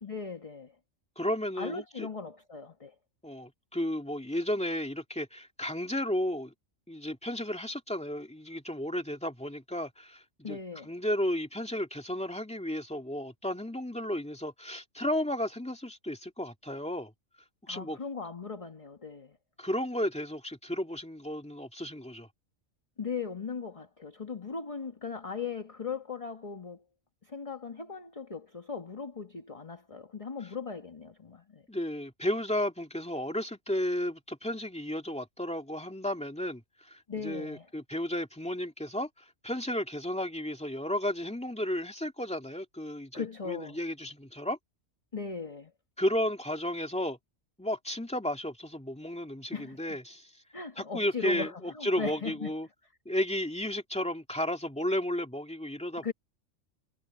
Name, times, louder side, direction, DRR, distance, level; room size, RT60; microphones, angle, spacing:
voice 1, 0.0-0.7 1.6-2.9 10.4-10.9 17.7-19.4 23.0-26.8 27.2-31.6 37.1-37.7 43.1-43.8 45.1-45.7 49.5-50.0 50.5-52.5 56.0-56.1, left 5 dB, 25° left, 1.4 m, -38 dB
voice 2, 1.2-2.1 3.2-6.5 6.9-10.6 10.9-17.1 17.7-18.0 19.6-22.3 31.7-39.1 39.4-44.6 46.0-47.2 47.6-50.3 50.8-52.7 53.1-56.1, left 1 dB, 5° left, 2.4 m, -33 dB
omnidirectional pair, 1.3 m